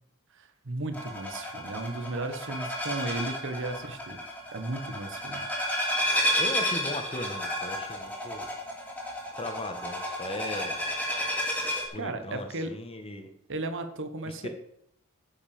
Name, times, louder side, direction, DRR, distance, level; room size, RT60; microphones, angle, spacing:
voice 1, 0.3-4.2 4.5-5.4 11.9-12.7 13.5-14.5, right 2 dB, 60° right, 9 dB, 1.2 m, -35 dB
sound 1, 0.9-11.9, equal, 5° left, 2.4 m, -32 dB
voice 2, 6.4-8.5 9.4-10.8 11.9-13.3 14.2-14.5, left 1 dB, 25° left, 6 dB, 1.3 m, -37 dB
10.0 x 5.7 x 7.0 m, 0.71 s
head